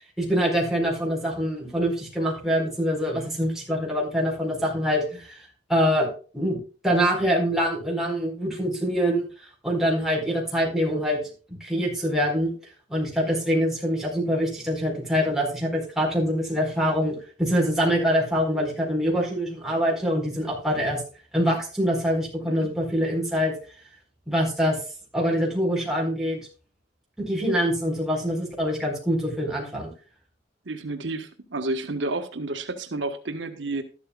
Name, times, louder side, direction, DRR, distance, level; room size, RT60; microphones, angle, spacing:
voice 1, 0.2-5.4 5.7-6.1 6.3-9.3 9.6-11.2 11.6-12.5 12.9-21.0 21.3-23.5 24.3-24.8 25.1-26.4 27.2-29.9, equal, 5° right, -2 dB, 4.5 m, -24 dB
voice 2, 30.6-33.8, right 2 dB, 75° right, 7 dB, 1.3 m, -30 dB
13.0 x 12.0 x 2.3 m, 0.37 s
head